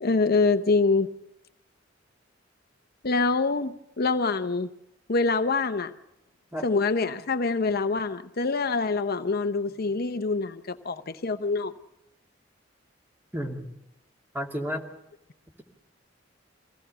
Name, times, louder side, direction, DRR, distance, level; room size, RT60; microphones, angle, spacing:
voice 1, 0.0-1.1 3.0-4.7 5.1-5.9 6.6-11.7, left 3 dB, 50° left, 0.7 m, -25 dB
voice 2, 13.3-13.7 14.3-14.8, equal, 10° right, 2.5 m, -31 dB
23.5 x 16.5 x 6.9 m
head